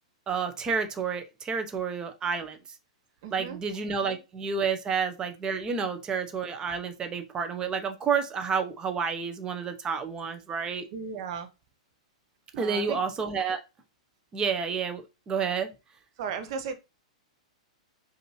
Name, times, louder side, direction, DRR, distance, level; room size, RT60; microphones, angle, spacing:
voice 1, 0.3-2.6 3.3-10.9 12.6-13.6 14.3-15.7, right 6 dB, 20° right, 0.8 m, -30 dB
voice 2, 3.2-3.6 10.9-11.5 12.5-13.0 16.2-16.7, right 6 dB, 50° right, 0.8 m, -35 dB
5.1 x 2.7 x 3.0 m
figure-of-eight pair, 105°, 4 cm